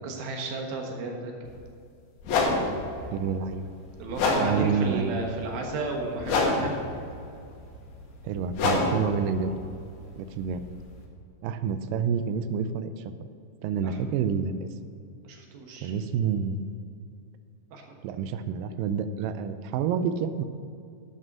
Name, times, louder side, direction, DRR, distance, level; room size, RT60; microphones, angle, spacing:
voice 1, 0.0-1.5 4.0-6.9 8.7-8.8 13.8-14.0 15.2-15.9 17.7-18.0, right 3 dB, 70° right, 1 dB, 3.1 m, -34 dB
sound 1, 1.4-1.6 2.2-11.0, left 3 dB, 70° left, 3.3 m, -29 dB
voice 2, 3.1-3.7 4.4-5.2 8.2-9.6 10.2-10.6 11.4-13.1 13.6-14.7 15.8-16.6 18.0-20.5, right 6 dB, 90° right, 10 dB, 1.9 m, -28 dB
11.0 x 6.8 x 6.1 m, 2.5 s
omnidirectional pair, 4.6 m